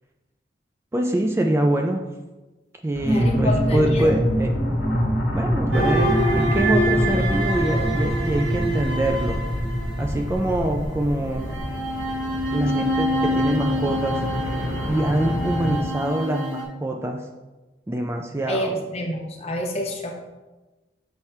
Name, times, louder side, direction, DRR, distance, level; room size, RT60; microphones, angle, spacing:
voice 1, 0.9-2.0 2.8-4.5 5.3-9.4 10.0-11.5 12.5-14.6 14.9-17.3 17.9-18.8, right 1 dB, 15° right, 3 dB, 0.3 m, -24 dB
sound 1, 2.9-15.8, left 1 dB, 85° left, 1.4 m, -32 dB
sound 2, 3.0-11.6, equal, 10° left, 1.3 m, -24 dB
voice 2, 3.1-4.2 18.5-20.1, left 1 dB, 35° left, 2 dB, 0.9 m, -28 dB
sound 3, 5.7-10.5 11.4-16.6, right 1 dB, 90° right, 1.3 m, -26 dB
7.2 x 3.3 x 4.5 m, 1.2 s
head